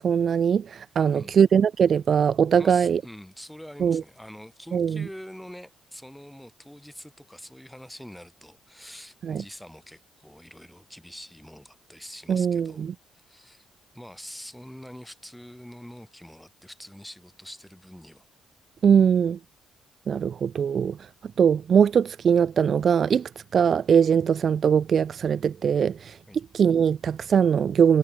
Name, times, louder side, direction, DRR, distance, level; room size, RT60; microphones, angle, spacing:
voice 1, 0.0-3.0 3.8-4.0 4.7-5.1 9.2-9.4 12.3-12.9 18.8-19.4 20.1-28.0, right 7 dB, 55° right, 0.5 m, -21 dB
voice 2, 1.0-1.4 2.6-12.8 13.1-13.7 13.9-18.3 26.3-26.4, equal, 5° left, 3.8 m, -45 dB
cardioid pair, 90°, 0 cm